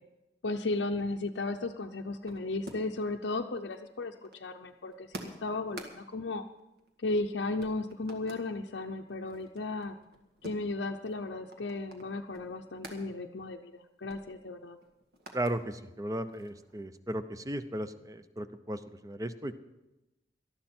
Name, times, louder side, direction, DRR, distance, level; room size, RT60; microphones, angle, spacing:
voice 1, 0.4-6.4 7.0-10.0 10.4-14.8, left 2 dB, 75° left, 1 dB, 0.6 m, -35 dB
sound 1, 1.2-3.1 3.4-7.3 7.6-8.5 8.9-13.0 13.4-13.5 13.8-15.6 16.0-16.8, right 1 dB, 60° right, 1.9 m, -50 dB
voice 2, 15.3-19.6, right 1 dB, 20° right, 11 dB, 0.7 m, -36 dB
19.0 x 12.5 x 4.4 m, 0.98 s
head